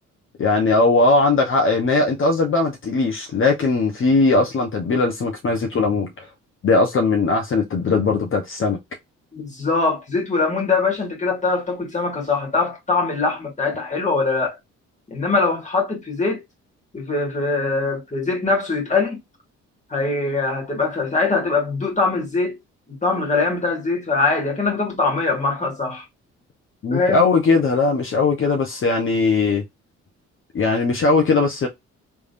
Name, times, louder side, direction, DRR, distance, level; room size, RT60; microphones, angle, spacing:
voice 1, 0.4-6.3 6.6-8.8 26.8-29.6 30.5-31.7, left 3 dB, 45° left, 1.0 m, -19 dB
voice 2, 9.3-14.6 15.1-16.4 16.9-19.2 19.9-22.6 22.9-26.0 26.9-27.3, left 3 dB, 25° left, 1.9 m, -22 dB
3.4 x 3.4 x 2.6 m
cardioid pair, 90°, 30 cm